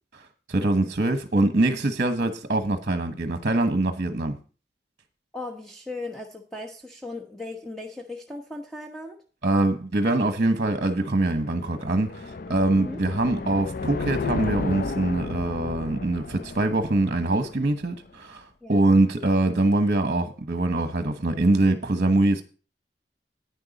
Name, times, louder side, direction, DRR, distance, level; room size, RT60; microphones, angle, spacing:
voice 1, 0.1-4.4 9.4-22.4, right 2 dB, 45° right, 1.2 m, -23 dB
voice 2, 5.3-9.2 12.8-13.0 18.6-19.0, left 2 dB, ahead, 1.1 m, -37 dB
sound 1, 10.9-17.9, left 3 dB, 55° left, 0.5 m, -34 dB
10.5 x 9.5 x 4.1 m
head